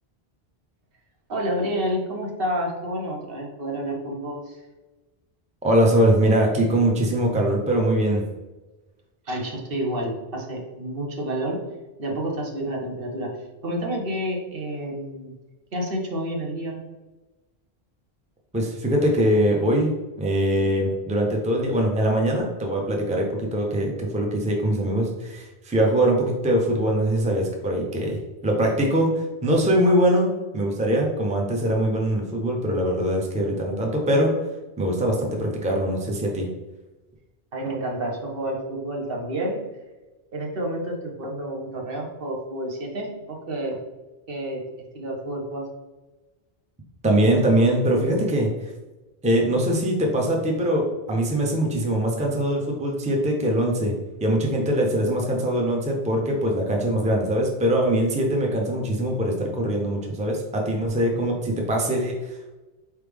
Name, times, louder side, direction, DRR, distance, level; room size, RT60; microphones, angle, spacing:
voice 1, 1.3-4.6 9.3-11.6 12.0-13.4 13.6-15.3 15.7-16.8 37.5-39.6 40.3-43.8 44.3-45.7, right 1 dB, 65° right, 0 dB, 1.1 m, -29 dB
voice 2, 5.6-8.2 18.5-30.3 30.5-34.3 34.8-36.5 47.0-48.5 49.2-53.9 54.2-62.6, right 1 dB, 10° right, 0 dB, 0.6 m, -22 dB
4.5 x 3.3 x 3.4 m, 1.1 s
omnidirectional pair, 1.0 m